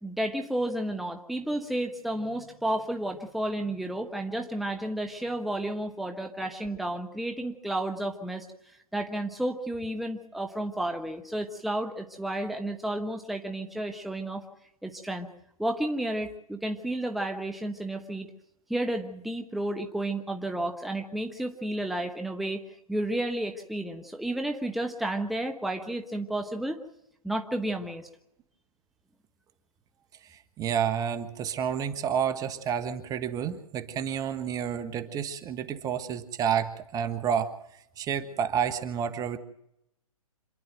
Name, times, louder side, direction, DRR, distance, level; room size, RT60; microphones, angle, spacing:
voice 1, 0.0-14.4 14.8-15.3 15.6-18.3 18.7-26.8 27.2-28.1, right 1 dB, ahead, 4 dB, 1.1 m, -32 dB
voice 2, 30.3-37.5 38.0-39.4, right 8 dB, 20° right, 11 dB, 1.2 m, -30 dB
27.0 x 10.5 x 9.2 m, 0.79 s
hypercardioid pair, 130°, 18 cm